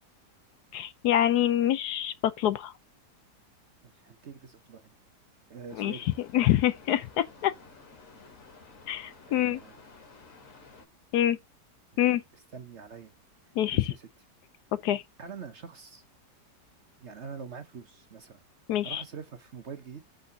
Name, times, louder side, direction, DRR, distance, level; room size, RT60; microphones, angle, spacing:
voice 1, 0.7-2.7 5.8-6.0 6.3-7.5 8.9-9.6 11.1-11.4 12.0-12.2 13.6-13.9 14.7-15.0 18.7-19.0, left 12 dB, 75° left, 1.1 m, -26 dB
voice 2, 3.8-4.9 5.5-6.1 9.3-9.8 11.9-13.1 13.7-14.1 15.2-16.0 17.0-18.4 18.8-20.0, right 6 dB, 50° right, 0.9 m, -45 dB
sound 1, 5.7-10.9, left 4 dB, 50° left, 2.0 m, -53 dB
8.3 x 3.7 x 5.1 m
omnidirectional pair, 1.9 m